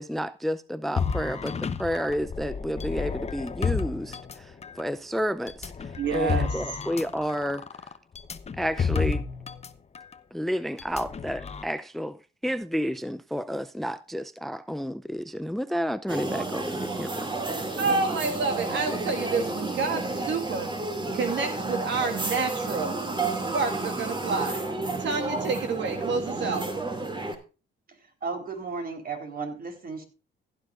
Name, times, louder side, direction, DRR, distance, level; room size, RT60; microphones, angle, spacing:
voice 1, 0.0-7.7 8.6-9.2 10.3-17.3, equal, ahead, 0.5 m, -31 dB
sound 1, 1.0-4.8 5.5-9.7 9.9-10.1 10.8-11.6, left 5 dB, 30° left, 0.9 m, -31 dB
voice 2, 6.0-6.6 17.8-20.7 21.1-23.0 23.3-24.6 25.0-26.7, right 4 dB, 65° right, 1.9 m, -29 dB
sound 2, 16.1-27.3, right 3 dB, 25° right, 2.5 m, -31 dB
voice 3, 27.9-30.0, right 4 dB, 50° right, 4.0 m, -35 dB
16.0 x 10.5 x 2.5 m
cardioid pair, 90°, 20 cm